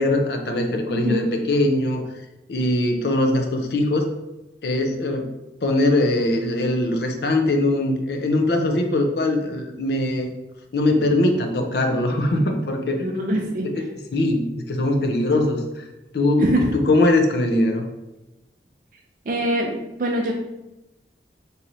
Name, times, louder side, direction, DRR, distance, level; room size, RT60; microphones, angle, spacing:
voice 1, 0.0-2.1 2.5-4.1 4.6-5.3 5.6-10.3 10.7-13.4 13.6-13.9 14.1-15.9 16.1-17.8, left 1 dB, 60° left, 4 dB, 0.5 m, -21 dB
voice 2, 0.9-1.2 13.0-13.9 16.4-16.7 19.3-20.3, right 1 dB, 50° right, 1 dB, 0.4 m, -24 dB
3.1 x 2.7 x 4.0 m, 0.96 s
head